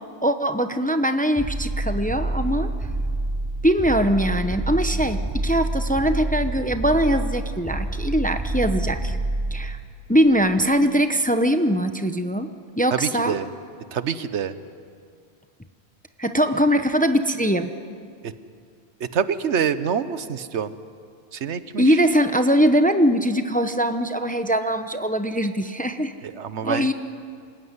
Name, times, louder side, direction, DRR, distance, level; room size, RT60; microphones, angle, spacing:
voice 1, 0.2-2.7 3.6-9.2 9.5-9.8 10.1-12.5 12.8-13.4 16.2-17.7 21.8-26.1 26.6-26.9, equal, 10° left, 8 dB, 0.7 m, -21 dB
sound 1, 1.4-10.5, right 2 dB, 10° right, 2.9 m, -27 dB
voice 2, 12.9-13.5 13.9-14.5 18.2-18.3 19.0-20.7 21.3-22.0 26.2-26.9, right 7 dB, 85° right, 13 dB, 1.2 m, -26 dB
26.5 x 15.0 x 9.7 m, 2.2 s
omnidirectional pair, 1.1 m